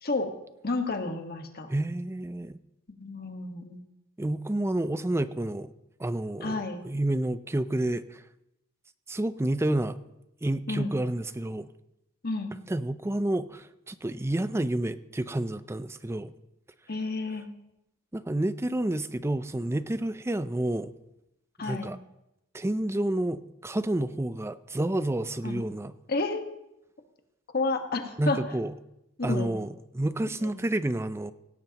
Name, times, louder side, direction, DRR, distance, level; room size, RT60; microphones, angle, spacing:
voice 1, 0.6-1.7 3.0-3.8 6.4-6.8 10.7-10.9 12.2-12.5 16.9-17.5 21.6-21.9 25.4-25.6 26.1-26.4 27.5-28.4 29.3-29.5 30.4-30.5, left 3 dB, 45° left, 5 dB, 1.4 m, -30 dB
voice 2, 1.7-2.6 4.2-5.7 6.0-8.2 9.1-10.0 10.4-11.7 12.7-16.3 18.1-20.9 21.6-22.0 22.5-25.9 28.2-28.7 29.2-31.3, right 1 dB, 10° right, 13 dB, 0.4 m, -29 dB
17.5 x 16.5 x 2.9 m, 0.89 s
head